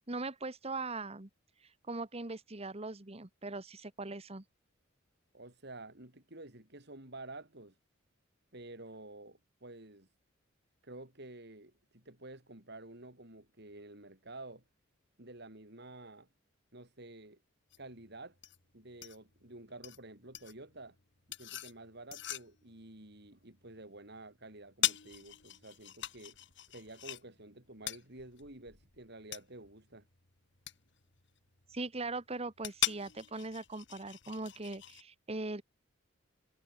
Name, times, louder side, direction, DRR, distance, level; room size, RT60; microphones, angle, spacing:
voice 1, 0.1-1.3 1.9-4.4 31.7-35.6, right 3 dB, 30° right, 1.4 m, -40 dB
voice 2, 5.3-7.8 8.5-10.1 10.8-14.6 15.2-16.3 16.7-17.4 17.8-18.4 18.7-21.0 21.4-26.4 26.7-30.1, right 2 dB, 55° right, 4.6 m, -50 dB
sound 1, 17.7-35.0, left 13 dB, 60° left, 2.3 m, -42 dB
head